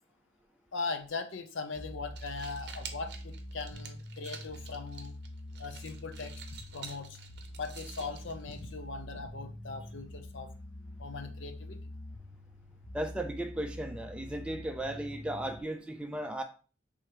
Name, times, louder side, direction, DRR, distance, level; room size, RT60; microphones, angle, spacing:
voice 1, 0.7-5.1 5.6-6.4 6.7-7.2 7.5-10.5 11.0-11.8, left 4 dB, 70° left, 0.6 m, -40 dB
sound 1, 1.7-15.6, left 1 dB, 20° left, 0.8 m, -45 dB
sound 2, 2.0-9.0, right 6 dB, 55° right, 0.7 m, -50 dB
voice 2, 12.9-16.4, right 1 dB, 5° right, 0.4 m, -36 dB
3.5 x 3.0 x 4.8 m
head